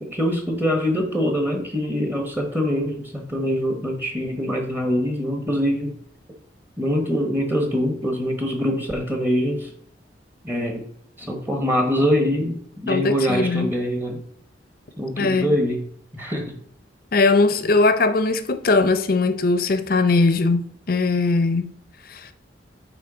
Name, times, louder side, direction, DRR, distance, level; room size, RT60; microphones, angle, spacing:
voice 1, 0.0-6.0 6.8-9.7 10.4-10.9 11.2-14.2 15.0-15.8 16.1-16.6, equal, 10° right, 1.0 m, -24 dB
voice 2, 12.9-13.7 15.2-15.6 17.1-21.8 22.1-22.3, left 3 dB, 50° left, 0.6 m, -20 dB
8.7 x 3.2 x 5.0 m
head